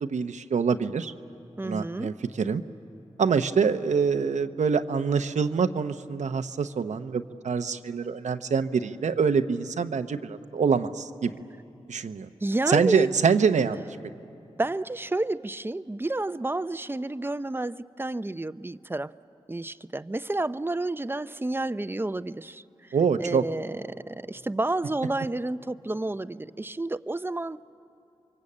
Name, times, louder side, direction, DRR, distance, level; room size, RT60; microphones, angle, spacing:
voice 1, 0.0-1.1 1.6-2.6 3.2-11.3 11.9-12.3 12.7-13.8 22.9-23.4, right 6 dB, 85° right, 9 dB, 0.8 m, -25 dB
voice 2, 1.6-2.1 12.4-13.1 14.6-19.1 19.5-22.6 23.2-27.6, right 2 dB, 20° right, 14 dB, 0.6 m, -30 dB
28.0 x 23.5 x 8.6 m, 2.8 s
cardioid pair, 45°, 12 cm